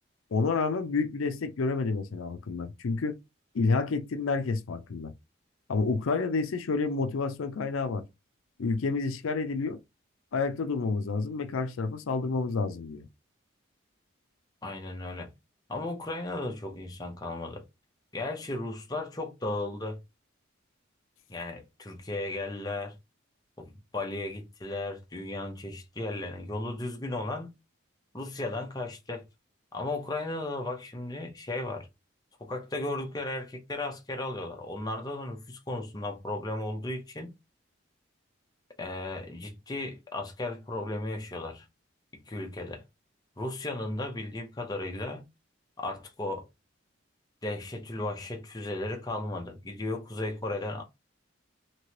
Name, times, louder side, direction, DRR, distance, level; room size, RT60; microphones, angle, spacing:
voice 1, 0.3-3.2 3.5-5.1 5.7-8.0 8.6-9.8 10.3-13.0, left 4 dB, 90° left, 0.5 m, -29 dB
voice 2, 14.6-15.3 15.7-17.6 18.1-20.0 21.3-23.0 23.6-27.5 28.1-29.3 29.7-31.9 32.4-37.3 38.8-41.7 42.3-42.8 43.4-45.3 45.8-46.5 47.4-50.8, left 2 dB, 20° left, 0.6 m, -35 dB
3.0 x 2.9 x 2.9 m
head